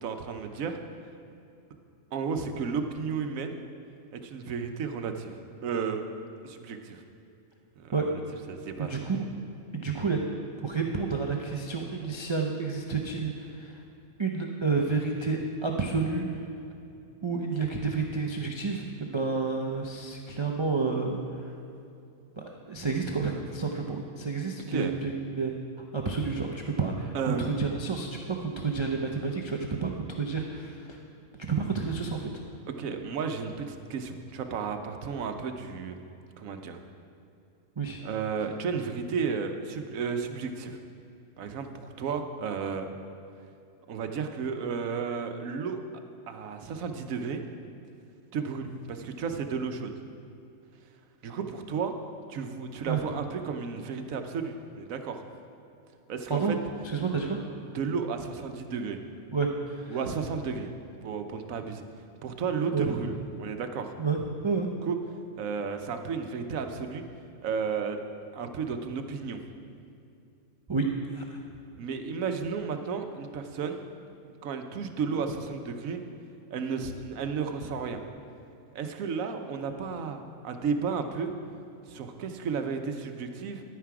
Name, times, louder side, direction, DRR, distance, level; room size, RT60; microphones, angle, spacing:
voice 1, 0.0-0.8 2.1-3.6 4.1-6.0 6.4-7.0 7.8-8.1 8.5-8.9 24.7-24.9 27.1-27.5 32.8-36.0 36.4-36.8 38.0-40.8 41.4-42.9 43.9-45.8 46.3-47.4 48.3-49.9 51.2-51.9 52.3-55.2 56.1-56.6 57.7-59.0 59.9-60.7 61.0-61.8 62.2-63.9 64.8-65.0 65.4-67.0 67.4-68.0 68.3-69.4 71.8-73.8 74.4-76.0 76.5-78.0 78.7-81.3 81.9-83.6, right 5 dB, 75° right, 6 dB, 1.2 m, -33 dB
voice 2, 8.8-9.2 9.7-10.2 10.6-13.7 14.2-16.3 17.2-21.2 22.4-25.5 25.9-31.0 31.5-32.4 37.8-38.0 52.9-53.0 56.3-56.6 56.9-57.4 59.3-60.0 62.7-63.0 64.0-64.7 70.7-70.9 71.1-71.2, right 4 dB, 35° right, 0 dB, 0.5 m, -30 dB
11.0 x 9.3 x 4.8 m, 2.7 s
omnidirectional pair, 1.5 m